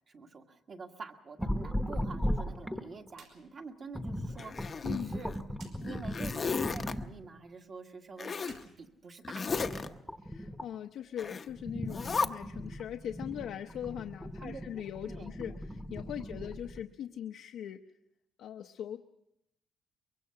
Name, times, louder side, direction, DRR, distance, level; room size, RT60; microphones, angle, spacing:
voice 1, 0.1-5.3 5.8-8.3 8.8-10.0 14.2-15.3 16.2-16.5, right 4 dB, 40° right, 4 dB, 1.7 m, -47 dB
sound 1, 1.4-3.1 3.9-7.2 9.5-10.7 11.2-16.8, equal, ahead, 1.0 m, -37 dB
sound 2, 3.1-3.4 3.7-3.8 5.5-5.8 8.3-9.7, right 5 dB, 75° right, 5.2 m, -56 dB
Zipper (clothing), 4.4-5.4 5.8-6.9 8.2-8.6 9.2-9.9 11.2-11.5 11.9-12.3, left 5 dB, 30° left, 0.7 m, -34 dB
voice 2, 4.8-5.1 10.2-17.8 18.4-19.0, left 10 dB, 80° left, 4 dB, 0.8 m, -40 dB
23.5 x 23.0 x 5.7 m, 0.82 s
cardioid pair, 160°, 0 cm